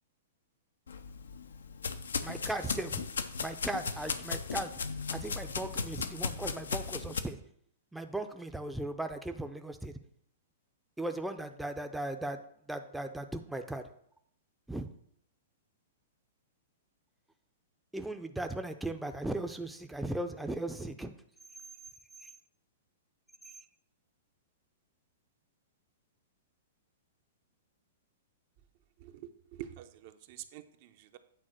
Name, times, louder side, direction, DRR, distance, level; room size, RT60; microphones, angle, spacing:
sound 1, 0.9-7.2, left 5 dB, 80° left, 0.6 m, -36 dB
voice 1, 2.2-3.0 3.4-4.7 5.1-7.4 7.9-9.9 11.0-12.4 12.7-13.8 14.7-14.9 17.9-21.1 22.2-22.3 23.5-23.6, right 1 dB, 5° right, 6 dB, 0.5 m, -37 dB
voice 2, 29.0-31.2, right 12 dB, 50° right, 9 dB, 0.7 m, -47 dB
8.8 x 3.6 x 6.3 m, 0.68 s
hypercardioid pair, 115°, 0 cm